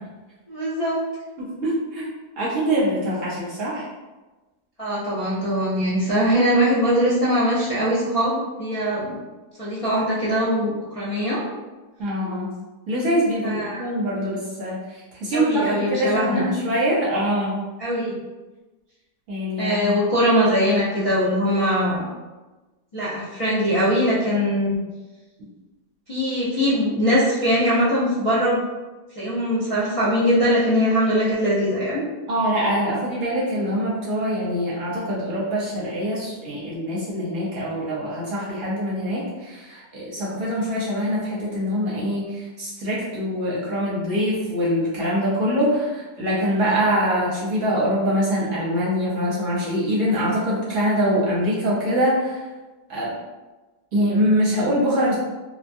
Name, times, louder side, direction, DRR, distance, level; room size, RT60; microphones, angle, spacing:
voice 1, 0.5-1.0 4.8-9.2 9.6-11.4 13.4-13.8 15.3-16.5 17.8-18.1 19.6-22.1 22.9-24.8 26.1-28.6 29.2-32.0, equal, 45° left, -12 dB, 0.4 m, -21 dB
voice 2, 1.4-2.1 2.4-3.9 12.0-12.5 12.9-17.6 19.3-19.9 32.3-52.4 52.9-53.1 53.9-55.1, equal, 55° right, -7 dB, 1.0 m, -24 dB
2.8 x 2.2 x 2.6 m, 1.2 s
omnidirectional pair, 1.8 m